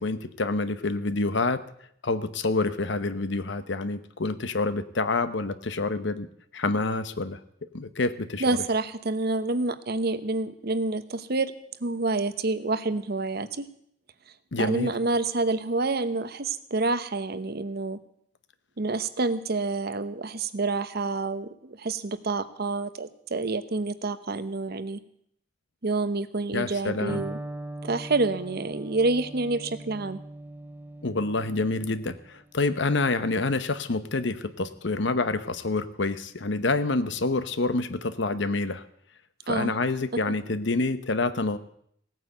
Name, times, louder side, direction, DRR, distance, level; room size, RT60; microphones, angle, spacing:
voice 1, 0.0-1.6 2.0-6.3 6.5-7.4 7.7-8.4 14.5-14.9 26.5-27.2 31.0-38.8 39.5-41.6, left 3 dB, 70° left, 13 dB, 0.9 m, -27 dB
voice 2, 8.4-11.5 11.8-13.7 14.6-18.0 18.8-25.0 25.8-27.4 27.8-30.2 39.5-39.7, right 3 dB, 55° right, 13 dB, 0.9 m, -28 dB
Electric guitar, 27.1-34.9, right 1 dB, 10° right, 0.6 m, -42 dB
17.0 x 9.3 x 8.0 m, 0.69 s
head